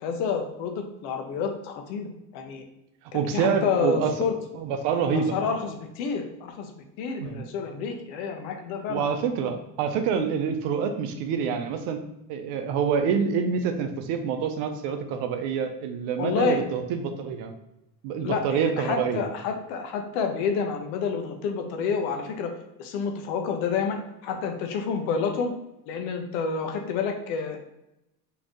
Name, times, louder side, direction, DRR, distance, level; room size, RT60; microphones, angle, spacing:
voice 1, 0.0-2.6 3.1-4.3 5.1-9.1 16.2-16.6 18.2-22.5 22.8-25.5 25.9-27.6, left 5 dB, 65° left, 4 dB, 0.9 m, -29 dB
voice 2, 3.1-4.1 4.5-5.4 7.2-7.4 8.9-12.0 12.3-17.5 18.0-19.2, right 6 dB, 60° right, 7 dB, 0.8 m, -27 dB
4.1 x 3.1 x 3.0 m, 0.88 s
hypercardioid pair, 75°, 48 cm